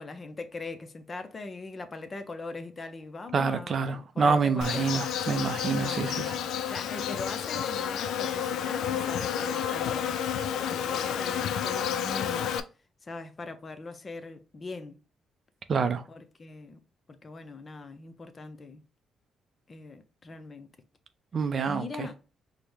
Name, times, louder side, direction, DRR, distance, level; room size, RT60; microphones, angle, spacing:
voice 1, 0.0-5.2 5.7-10.2 10.5-12.6 13.0-15.0 16.1-16.8 17.1-18.8 19.7-20.7 21.7-22.2, left 3 dB, 35° left, 0.6 m, -41 dB
voice 2, 3.3-6.3 15.7-16.0 21.3-22.1, right 5 dB, 50° right, 0.4 m, -27 dB
Insect, 4.6-12.6, left 8 dB, 80° left, 0.3 m, -30 dB
4.6 x 2.1 x 3.3 m
cardioid pair, 90°, 0 cm